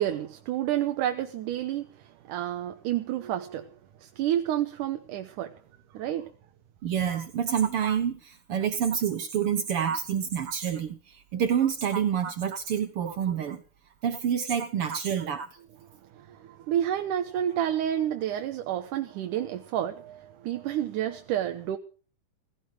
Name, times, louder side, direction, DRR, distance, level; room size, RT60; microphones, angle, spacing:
voice 1, 0.0-3.7 4.0-5.5 5.9-6.3 16.2-21.8, right 11 dB, 80° right, 2.6 m, -30 dB
voice 2, 6.8-13.6 14.0-15.5, right 8 dB, 65° right, 1.5 m, -28 dB
18.0 x 16.0 x 5.0 m
omnidirectional pair, 3.6 m